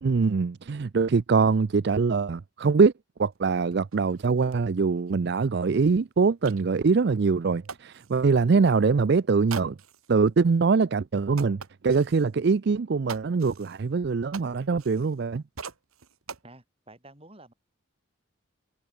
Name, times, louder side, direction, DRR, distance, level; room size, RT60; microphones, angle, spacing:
voice 1, 0.0-2.9 3.2-9.8 10.1-15.4, right 4 dB, 50° right, 0.4 m, -23 dB
sound 1, 3.3-3.4 3.7-8.4 9.5-10.2 10.7-10.8 11.3-12.3 13.1-15.3 15.6-16.4, right 6 dB, 90° right, 1.9 m, -44 dB
voice 2, 16.4-17.5, right 2 dB, 25° right, 4.7 m, -50 dB
head